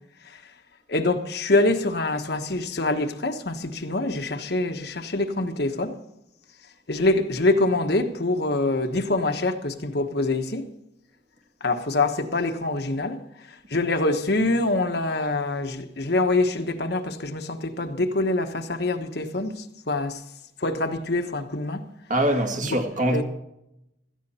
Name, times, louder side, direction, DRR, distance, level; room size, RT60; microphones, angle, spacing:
voice 1, 0.9-6.0 6.9-10.7 11.6-20.2 20.6-21.8 22.6-22.8 23.1-23.2, left 2 dB, 60° left, 1.2 m, -25 dB
voice 2, 22.1-23.2, right 1 dB, 45° right, 2.0 m, -23 dB
17.0 x 13.5 x 4.3 m
head